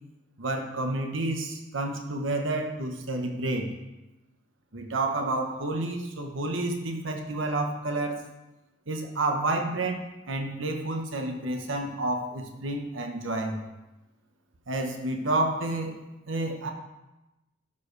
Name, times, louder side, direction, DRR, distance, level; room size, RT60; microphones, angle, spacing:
voice 1, 0.4-3.7 4.7-8.3 8.9-13.6 14.7-15.9 16.3-16.7, right 2 dB, 90° right, 3 dB, 1.2 m, -30 dB
12.5 x 7.0 x 3.3 m, 1.0 s
head